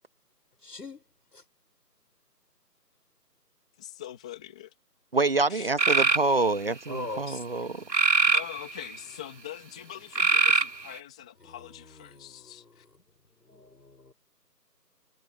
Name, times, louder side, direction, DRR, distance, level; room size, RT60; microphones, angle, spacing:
voice 1, 0.6-1.0 6.9-7.4 11.5-11.6 12.0-12.7 13.5-14.1, left 3 dB, 75° left, 6.6 m, -41 dB
voice 2, 3.8-4.7 5.5-5.7 8.3-12.8, left 12 dB, 5° left, 1.5 m, -43 dB
voice 3, 5.1-7.8, right 3 dB, 35° right, 1.5 m, -26 dB
sound 1, 5.8-6.2 7.9-9.0 10.2-11.0, right 3 dB, 80° right, 2.5 m, -22 dB
figure-of-eight pair, 165°, 49 cm